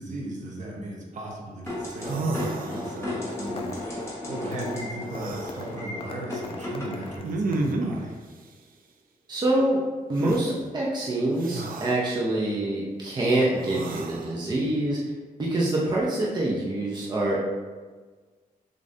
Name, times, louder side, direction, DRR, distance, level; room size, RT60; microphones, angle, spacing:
voice 1, 0.0-3.7 4.3-8.1, right 1 dB, 60° right, -2 dB, 0.9 m, -37 dB
sound 1, 1.7-7.2, left 1 dB, 20° left, 1.2 m, -34 dB
sound 2, 1.7-1.8 2.0-3.2 5.0-5.6 7.2-8.1 10.2-10.4 11.4-12.0 13.5-14.3, right 3 dB, 80° right, 0.4 m, -31 dB
sound 3, 3.3-4.0 4.5-4.8 5.1-7.8, left 3 dB, 40° left, 0.4 m, -41 dB
voice 2, 9.3-9.8 10.1-15.0 15.4-17.4, right 1 dB, 30° right, -4 dB, 0.6 m, -25 dB
6.5 x 2.6 x 2.6 m, 1.4 s
wide cardioid pair, 160°, 15 cm